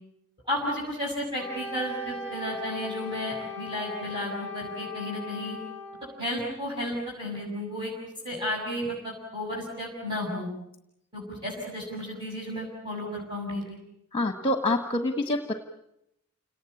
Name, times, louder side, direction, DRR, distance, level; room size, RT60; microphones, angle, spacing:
voice 1, 0.5-5.6 6.2-7.9 8.2-10.5 11.1-13.8, left 1 dB, 20° right, -4 dB, 6.7 m, -33 dB
Wind instrument woodwind instrument, 1.4-6.2, left 2 dB, 5° left, 5.9 m, -39 dB
voice 2, 14.1-15.5, left 1 dB, 25° left, 7 dB, 1.4 m, -26 dB
29.5 x 19.0 x 8.5 m, 0.80 s
head